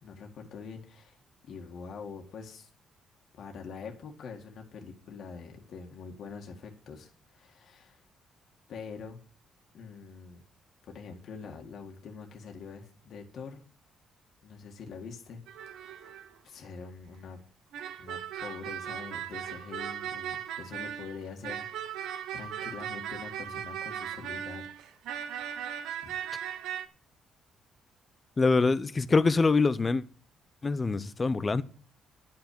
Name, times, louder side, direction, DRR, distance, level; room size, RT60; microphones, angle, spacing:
voice 1, 0.0-1.2 1.4-2.7 3.3-8.0 8.7-9.2 9.7-10.4 10.9-13.6 14.4-15.4 15.7-16.2 16.4-17.4 18.0-22.0 22.3-24.7 26.0-26.1, left 5 dB, 65° left, 2.0 m, -44 dB
sound 1, 15.5-16.3 17.7-26.9, right 9 dB, 90° right, 1.0 m, -38 dB
voice 2, 28.4-30.0 30.6-31.6, left 4 dB, 30° left, 0.7 m, -24 dB
11.0 x 5.8 x 8.7 m
cardioid pair, 90°, 0 cm